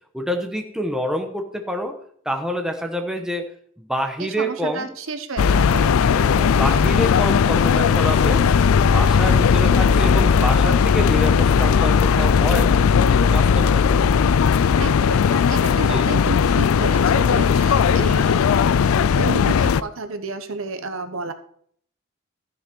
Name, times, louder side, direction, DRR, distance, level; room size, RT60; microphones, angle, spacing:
voice 1, 0.1-1.9 2.2-3.5 3.8-4.9 6.0-8.6 8.9-12.8 13.1-14.0 15.7-16.1, equal, 5° right, 4 dB, 1.1 m, -27 dB
voice 2, 4.2-6.0 14.8-18.4 19.2-21.3, right 3 dB, 75° right, 9 dB, 1.0 m, -31 dB
sound 1, 5.4-19.8, left 6 dB, 80° left, 0.4 m, -17 dB
13.5 x 7.0 x 4.5 m, 0.63 s
head